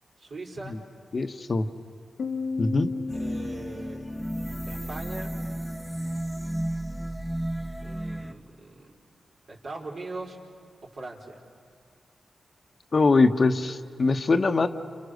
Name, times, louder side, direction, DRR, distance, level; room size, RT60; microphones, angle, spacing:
voice 1, 0.2-0.8 3.2-4.0 4.7-5.3 7.8-8.9 9.5-10.4 10.8-11.3, right 2 dB, 70° right, -1 dB, 4.7 m, -40 dB
voice 2, 1.1-1.7 2.6-2.9 12.9-14.7, left 3 dB, 50° left, 7 dB, 1.2 m, -22 dB
Piano, 2.2-5.6, left 4 dB, 80° left, 1.9 m, -35 dB
sound 1, 3.1-8.3, right 1 dB, 5° right, 1.1 m, -33 dB
30.0 x 28.0 x 6.6 m, 2.3 s
cardioid pair, 60°, 0 cm